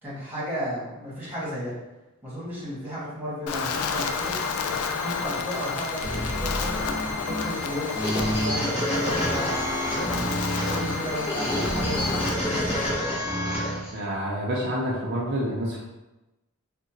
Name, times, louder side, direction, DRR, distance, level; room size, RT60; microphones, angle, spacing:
voice 1, 0.0-1.7 2.2-4.3 5.0-10.3 10.7-12.9, equal, 10° right, -9 dB, 1.4 m, -34 dB
Wind, 3.5-12.3, left 5 dB, 90° left, 0.3 m, -31 dB
sound 1, 3.9-12.9, left 1 dB, 55° left, 1.0 m, -40 dB
sound 2, 6.0-14.0, equal, 25° left, 0.8 m, -28 dB
voice 2, 13.9-15.8, equal, 50° right, -4 dB, 0.5 m, -28 dB
3.6 x 2.1 x 2.7 m, 1.0 s
head